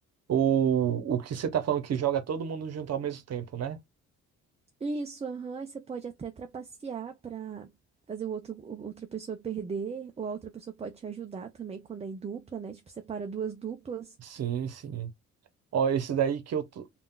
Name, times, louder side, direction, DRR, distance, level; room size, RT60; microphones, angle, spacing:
voice 1, 0.3-3.8 14.3-15.1 15.7-16.8, right 8 dB, 55° right, 0.9 m, -28 dB
voice 2, 4.8-7.7 8.1-14.2, right 6 dB, 20° right, 0.5 m, -37 dB
3.6 x 2.4 x 2.3 m
cardioid pair, 90°, 30 cm